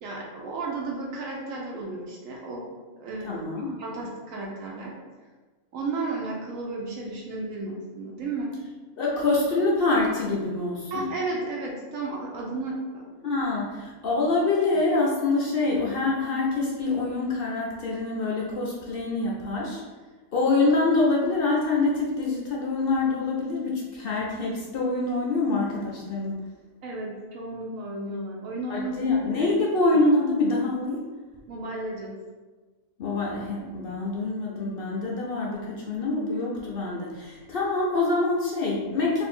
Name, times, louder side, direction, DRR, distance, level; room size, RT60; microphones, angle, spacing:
voice 1, 0.0-2.7 3.0-4.9 5.7-8.5 10.9-13.1 26.8-29.2 31.5-32.2, right 3 dB, 70° right, -2 dB, 1.0 m, -33 dB
voice 2, 3.2-3.8 9.0-11.0 13.2-19.8 20.3-26.4 28.7-31.0 33.0-39.2, left 3 dB, 65° left, -3 dB, 0.6 m, -25 dB
2.7 x 2.6 x 4.2 m, 1.3 s
omnidirectional pair, 1.5 m